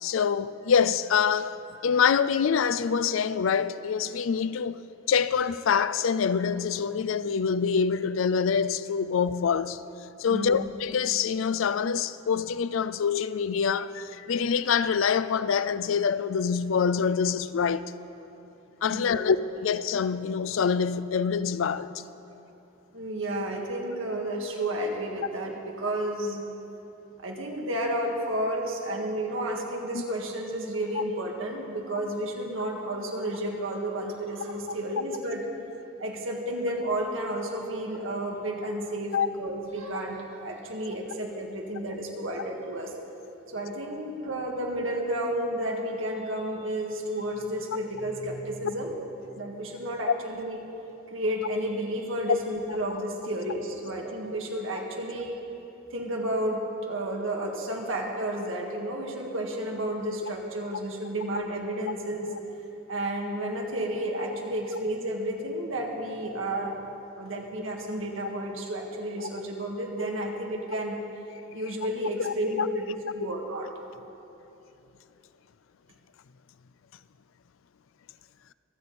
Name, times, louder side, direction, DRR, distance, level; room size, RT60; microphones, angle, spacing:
voice 1, 0.0-1.5 1.8-4.8 5.1-9.8 10.2-17.9 18.8-19.4 19.6-21.9 28.9-29.0 30.9-31.0 39.1-39.3 50.0-50.1 52.3-52.4 72.2-72.3, left 6 dB, 75° left, 0.4 m, -25 dB
voice 2, 18.9-19.3 22.9-26.5 27.2-35.4 36.0-42.9 43.5-48.9 49.3-50.6 51.1-55.4 55.9-62.5 62.9-66.9 67.2-71.0 71.5-73.7, right 1 dB, 80° right, 2.0 m, -31 dB
25.0 x 8.6 x 4.3 m
head